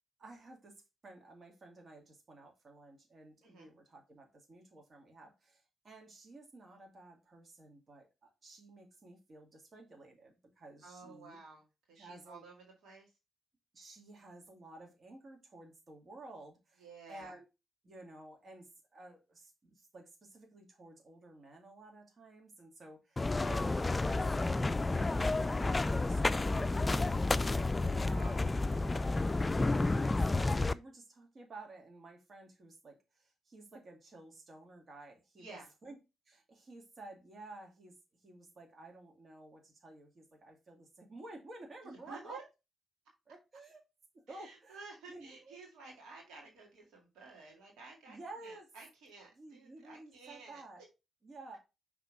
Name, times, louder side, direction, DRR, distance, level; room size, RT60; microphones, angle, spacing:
voice 1, 0.2-11.4 12.0-12.4 13.7-17.4 17.8-23.8 24.0-28.2 28.9-29.1 29.8-36.0 36.3-37.9 38.2-42.4 43.3-43.8 44.1-45.6 48.1-48.7 49.4-50.8 51.2-51.6, right 2 dB, 50° right, 2 dB, 1.9 m, -53 dB
voice 2, 10.8-13.1 16.8-17.3 28.0-29.3 35.4-35.7 41.8-42.5 44.3-50.6, right 4 dB, 75° right, 0 dB, 2.0 m, -53 dB
sound 1, 23.2-30.7, left 2 dB, 30° left, 0.4 m, -31 dB
5.9 x 3.7 x 4.6 m, 0.26 s
hypercardioid pair, 40°, 0 cm